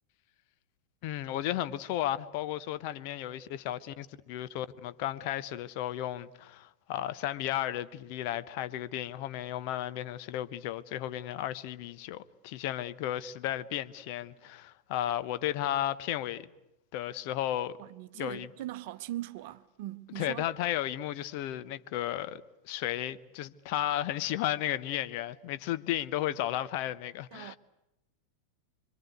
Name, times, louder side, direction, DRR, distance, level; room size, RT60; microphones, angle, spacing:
voice 1, 1.0-16.5 16.9-17.8 18.1-18.5 20.1-27.6, left 12 dB, 45° left, 1.1 m, -34 dB
voice 2, 17.8-20.5 27.3-27.6, right 15 dB, 50° right, 0.9 m, -40 dB
26.5 x 24.5 x 8.2 m
figure-of-eight pair, 90°, 0 cm